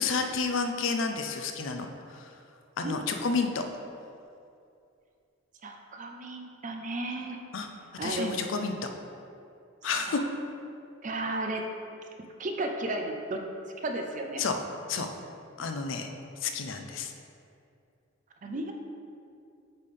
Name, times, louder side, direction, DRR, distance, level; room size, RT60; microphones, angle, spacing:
voice 1, 0.0-2.3 2.8-3.6 7.5-7.7 8.0-8.7 9.8-10.2 14.4-14.6 14.9-15.1 15.6-16.1 16.4-17.1, left 4 dB, 70° left, 5 dB, 0.5 m, -30 dB
voice 2, 5.6-7.4 8.0-8.4 10.1-10.2 11.0-11.6 12.4-13.4 13.8-14.4 18.4-18.7, right 2 dB, 40° right, 3 dB, 0.5 m, -33 dB
8.2 x 3.3 x 3.7 m, 2.5 s
head